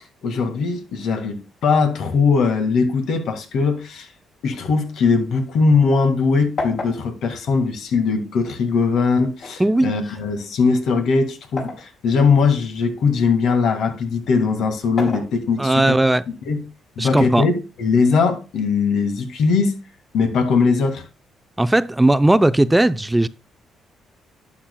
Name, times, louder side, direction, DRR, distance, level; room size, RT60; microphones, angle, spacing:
voice 1, 0.2-4.1 4.4-16.0 16.5-16.6 17.0-19.7 20.1-21.0, left 4 dB, 75° left, 1.7 m, -20 dB
sound 1, 4.9-6.2 6.6-8.5 9.4-11.9 12.4-13.7 14.7-15.9 17.0-18.0, left 3 dB, 55° left, 4.7 m, -34 dB
voice 2, 9.6-9.9 15.6-16.2 17.0-17.5 21.6-23.3, right 1 dB, 10° right, 0.4 m, -17 dB
11.5 x 8.7 x 2.2 m
cardioid pair, 90°, 0 cm